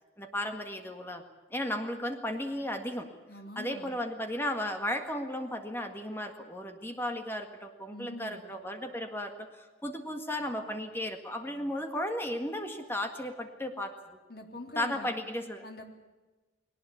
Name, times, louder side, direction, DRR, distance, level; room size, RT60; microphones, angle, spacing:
voice 1, 0.2-1.2 1.5-3.1 3.5-13.9 14.7-15.6, left 1 dB, 10° left, 5 dB, 1.8 m, -35 dB
voice 2, 3.3-4.0 7.9-8.4 14.3-15.2 15.6-15.8, left 1 dB, 55° left, 3 dB, 3.4 m, -44 dB
21.0 x 19.0 x 8.5 m, 1.2 s
head